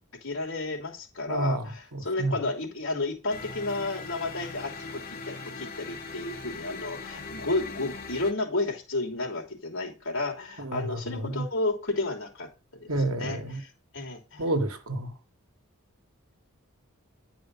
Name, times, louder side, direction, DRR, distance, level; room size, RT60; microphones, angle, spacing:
voice 1, 0.2-14.5, left 2 dB, 65° left, 3.0 m, -32 dB
voice 2, 1.3-2.3 10.6-11.4 12.9-13.6 14.4-15.1, right 2 dB, 75° right, 1.3 m, -30 dB
sound 1, 3.3-8.3, left 4 dB, 40° left, 1.2 m, -40 dB
10.0 x 5.0 x 5.4 m
head